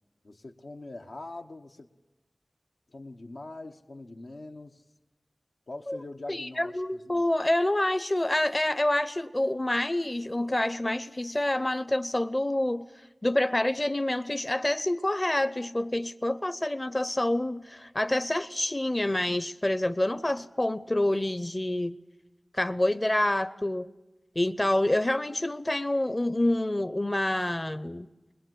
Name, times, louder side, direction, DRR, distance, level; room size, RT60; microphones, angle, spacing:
voice 1, 0.2-1.9 2.9-4.8 5.7-7.2, left 2 dB, 90° left, 1.1 m, -43 dB
voice 2, 6.3-12.9 13.2-22.0 22.5-23.9 24.4-28.1, left 1 dB, 35° left, 0.7 m, -27 dB
23.0 x 21.0 x 7.8 m
wide cardioid pair, 45°, 0 cm